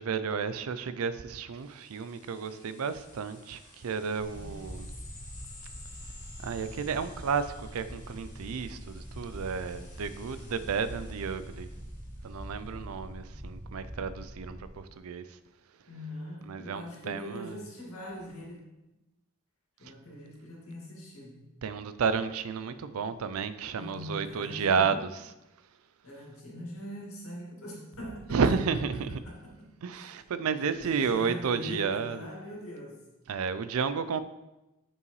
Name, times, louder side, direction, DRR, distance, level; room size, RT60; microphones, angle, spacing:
voice 1, 0.0-4.9 6.4-11.7 12.2-15.2 16.5-17.6 21.6-25.1 28.3-29.2 29.8-32.3 33.3-34.2, right 5 dB, 75° right, 13 dB, 0.4 m, -31 dB
sound 1, 1.6-12.7, left 3 dB, 35° left, 2.0 m, -54 dB
sound 2, 4.2-14.7, equal, 15° right, 0.6 m, -44 dB
voice 2, 15.9-18.6 19.8-21.4 23.8-25.0 26.0-28.4 28.9-29.7 30.6-33.0, equal, 70° left, -3 dB, 2.1 m, -42 dB
7.2 x 5.5 x 3.2 m, 0.99 s
head